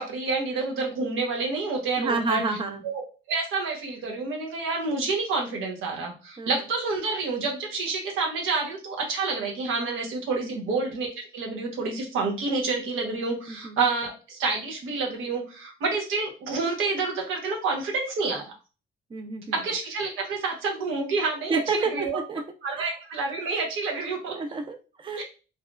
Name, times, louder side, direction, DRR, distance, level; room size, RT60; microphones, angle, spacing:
voice 1, 0.0-2.4 2.8-3.0 3.3-18.4 19.5-22.2 22.6-24.4 25.1-25.2, right 4 dB, 85° right, 0 dB, 1.1 m, -28 dB
voice 2, 2.0-2.8 6.4-6.5 10.4-10.8 13.5-13.8 19.1-19.7 21.5-22.4 22.7-23.0 24.3-25.2, right 4 dB, 25° right, 6 dB, 0.5 m, -30 dB
4.2 x 2.2 x 2.4 m, 0.33 s
cardioid pair, 90°, 20 cm